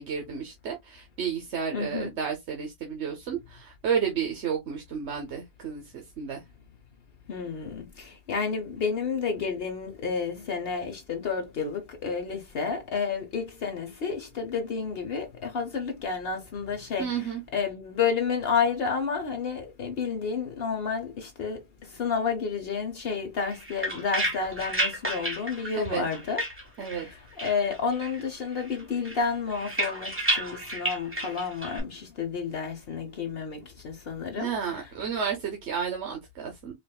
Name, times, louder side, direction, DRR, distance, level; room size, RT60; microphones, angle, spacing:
voice 1, 0.0-6.4 17.0-17.4 25.7-26.1 26.8-27.1 34.4-36.7, right 7 dB, 85° right, 1.2 m, -32 dB
voice 2, 1.7-2.1 7.3-26.4 26.9-34.9, left 5 dB, 65° left, 1.0 m, -31 dB
sound 1, 23.4-27.1 27.4-28.3 28.5-31.8, right 1 dB, 10° right, 1.3 m, -32 dB
4.9 x 2.5 x 2.3 m
omnidirectional pair, 1.1 m